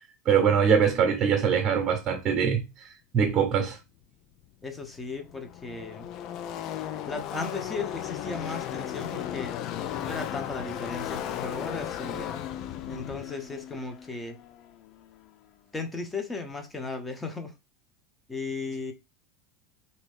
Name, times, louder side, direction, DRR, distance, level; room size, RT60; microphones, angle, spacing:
voice 1, 0.2-2.9 3.1-3.8, right 7 dB, 35° right, 0.9 m, -23 dB
Car passing by / Race car auto racing, 4.4-4.5 4.7-15.3, left 10 dB, 50° left, 0.4 m, -36 dB
voice 2, 4.6-6.1 7.1-9.6 10.0-12.4 12.9-14.4 15.7-17.5 18.3-18.9, left 3 dB, 15° left, 0.9 m, -36 dB
3.0 x 2.7 x 3.5 m
figure-of-eight pair, 80°, 0 cm